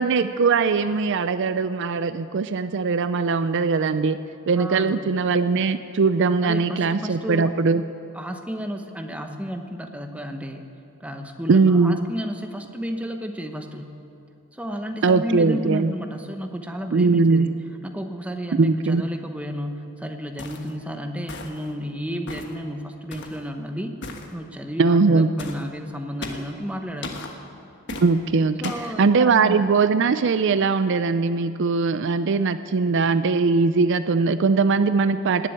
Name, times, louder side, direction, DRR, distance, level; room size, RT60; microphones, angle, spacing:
voice 1, 0.0-4.2 4.5-7.8 11.5-12.1 15.0-15.9 16.9-17.5 18.6-19.0 24.8-25.3 28.0-28.6 29.0-35.5, right 4 dB, 60° right, 12 dB, 0.4 m, -20 dB
voice 2, 4.6-5.0 6.4-7.5 8.1-10.6 11.0-13.9 14.5-17.5 17.8-23.9 24.3-27.2 28.6-29.5, equal, 5° right, 4 dB, 1.0 m, -32 dB
sound 1, 20.4-20.7 21.3-21.7 22.3-22.6 23.1-23.4 24.0-24.3 25.4-25.6 26.2-26.5 27.0-27.3 27.9-28.1 28.6-28.9, left 3 dB, 55° left, 1.4 m, -36 dB
18.5 x 7.6 x 10.0 m, 2.6 s
head